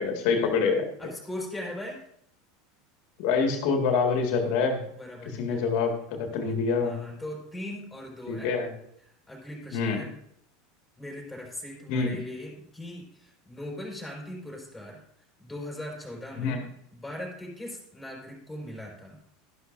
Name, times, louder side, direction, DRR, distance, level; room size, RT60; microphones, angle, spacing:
voice 1, 0.0-0.9 3.2-4.8 5.4-7.0 8.3-8.7 9.7-10.0 11.9-12.2 16.4-16.6, left 5 dB, 55° left, 3 dB, 1.8 m, -26 dB
voice 2, 1.0-2.0 4.9-5.6 6.8-8.5 9.3-10.1 11.0-15.0 15.4-16.6 16.9-19.2, left 1 dB, 5° left, -2 dB, 4.4 m, -39 dB
12.5 x 11.5 x 2.6 m, 0.71 s
figure-of-eight pair, 80°, 0 cm